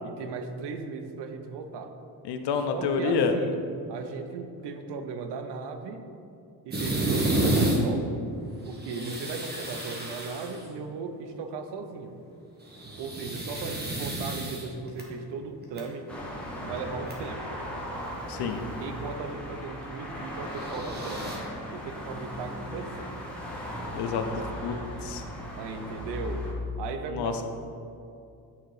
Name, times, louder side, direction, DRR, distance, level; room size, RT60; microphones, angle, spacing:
voice 1, 0.0-1.9 2.7-3.6 3.9-6.1 6.6-8.2 8.7-12.2 13.0-16.2 16.6-17.6 18.8-21.4 21.7-23.2 25.6-26.5 26.8-27.4, right 4 dB, 85° right, 7 dB, 0.8 m, -37 dB
voice 2, 2.2-3.4 8.9-9.3 18.3-18.6 23.9-24.7 25.0-25.2 27.1-27.3, left 5 dB, 75° left, 6 dB, 0.7 m, -28 dB
sound 1, 6.7-7.8 8.7-10.7 12.6-15.0 15.6-15.8 16.8-16.9 17.1-17.2 20.4-21.4, right 1 dB, 25° right, 1.2 m, -30 dB
sound 2, 16.1-26.5, left 1 dB, 5° left, 1.1 m, -37 dB
8.7 x 3.8 x 4.8 m, 2.6 s
cardioid pair, 150°, 40 cm